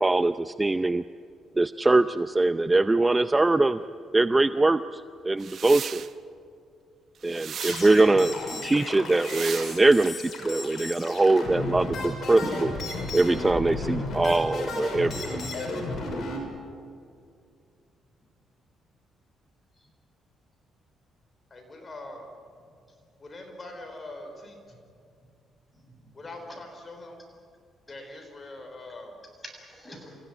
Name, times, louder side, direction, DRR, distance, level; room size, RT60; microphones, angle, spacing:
voice 1, 0.0-1.0 1.6-3.8 4.1-6.0 7.2-8.3 8.6-12.4 13.1-15.4, right 2 dB, 20° right, 12 dB, 0.5 m, -22 dB
sound 1, 5.4-6.1 7.2-8.0 9.1-9.8, right 8 dB, 60° right, 0.8 m, -36 dB
sound 2, 7.6-16.4, left 2 dB, 55° left, 6.6 m, -34 dB
voice 2, 21.5-22.3 23.2-24.6 26.1-27.2 27.9-29.1, left 2 dB, 30° left, 4 dB, 5.2 m, -42 dB
voice 3, 22.6-23.0 24.7-24.8 25.2-25.3 25.7-26.6 29.3-30.2, equal, 10° left, 1 dB, 7.5 m, -45 dB
28.0 x 16.5 x 9.8 m, 2.4 s
cardioid pair, 90°, 0 cm